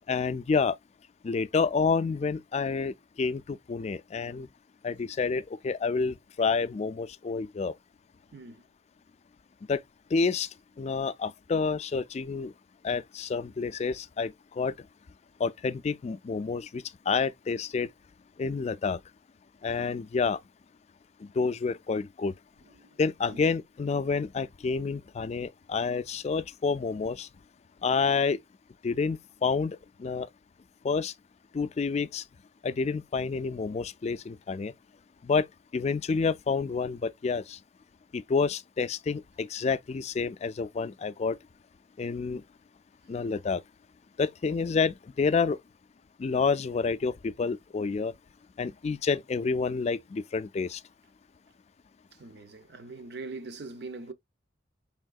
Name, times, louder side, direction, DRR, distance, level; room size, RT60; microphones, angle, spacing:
voice 1, 0.1-0.7 1.2-4.5 4.8-7.7 9.7-9.8 10.1-10.5 10.8-12.5 12.8-14.7 15.4-17.9 18.4-19.0 19.6-20.4 21.2-22.3 23.0-27.3 27.8-28.4 28.8-30.3 30.8-31.1 31.5-32.2 32.6-34.7 35.2-35.4 35.7-37.6 38.1-41.4 42.0-42.4 43.1-43.6 44.2-45.6 46.2-48.1 48.6-50.8, left 4 dB, 35° left, 0.3 m, -29 dB
voice 2, 8.3-8.6 22.6-23.0 23.3-23.4 44.4-44.6 52.1-54.1, right 3 dB, 60° right, 0.6 m, -42 dB
5.4 x 3.6 x 2.3 m
head